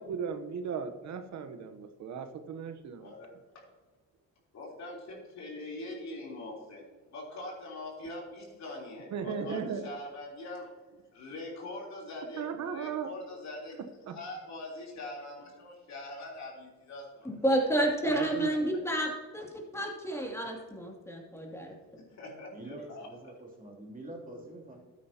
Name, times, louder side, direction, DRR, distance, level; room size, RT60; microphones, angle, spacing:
voice 1, 0.0-3.1 9.1-9.9 12.4-13.1 14.1-14.2 18.1-18.7, right 6 dB, 65° right, 7 dB, 1.0 m, -36 dB
voice 2, 3.0-3.3 4.5-10.7 11.1-13.8 14.1-17.4 22.1-23.3, left 2 dB, 65° left, -2 dB, 3.5 m, -43 dB
voice 3, 17.2-19.5 19.7-21.7, right 1 dB, 10° left, 0 dB, 2.6 m, -30 dB
voice 4, 22.5-24.8, right 1 dB, 25° right, -2 dB, 3.0 m, -45 dB
12.5 x 9.4 x 2.9 m, 1.3 s
cardioid pair, 90°, 30 cm